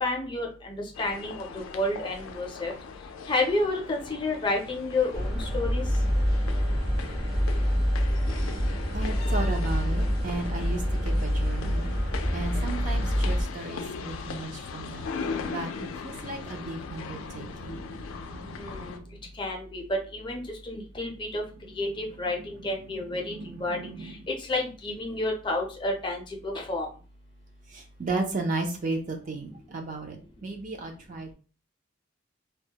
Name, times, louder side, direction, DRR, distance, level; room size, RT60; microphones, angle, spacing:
voice 1, 0.0-2.7 3.3-5.8 18.6-19.0 19.3-21.4 21.8-23.3 23.6-26.9, left 2 dB, 25° left, 1 dB, 0.4 m, -30 dB
sound 1, 0.9-19.0, left 5 dB, 85° left, 0.3 m, -39 dB
sound 2, 5.1-13.4, equal, 55° right, 0.8 m, -26 dB
voice 2, 8.9-11.9 12.3-17.8 27.7-31.3, right 3 dB, 40° right, 3 dB, 0.4 m, -34 dB
sound 3, 14.9-19.4 20.9-24.4, right 2 dB, 85° right, 0.5 m, -47 dB
2.2 x 2.0 x 2.8 m, 0.36 s
head